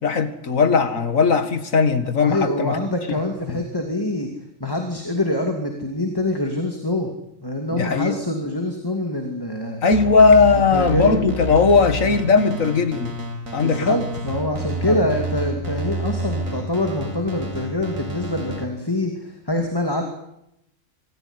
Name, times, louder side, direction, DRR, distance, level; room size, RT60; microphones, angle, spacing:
voice 1, 0.0-2.8 3.5-3.6 7.7-8.2 9.8-13.1 13.5-14.0 14.9-15.1, left 4 dB, 85° left, 9 dB, 2.3 m, -18 dB
voice 2, 2.2-4.3 4.6-7.1 7.4-9.8 10.7-11.2 13.6-20.0, left 1 dB, 15° left, 3 dB, 2.5 m, -25 dB
sound 1, 9.9-18.6, equal, 80° right, 4.1 m, -30 dB
25.0 x 15.0 x 9.8 m, 0.82 s
omnidirectional pair, 1.4 m